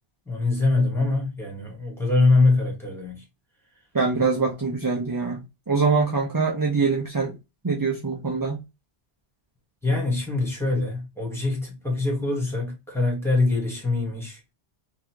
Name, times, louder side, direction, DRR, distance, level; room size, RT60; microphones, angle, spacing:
voice 1, 0.3-3.2 9.8-14.4, left 3 dB, ahead, 1.4 m, -23 dB
voice 2, 3.9-7.3 7.6-8.6, right 4 dB, 25° right, 0.5 m, -24 dB
3.8 x 2.5 x 2.9 m
omnidirectional pair, 1.1 m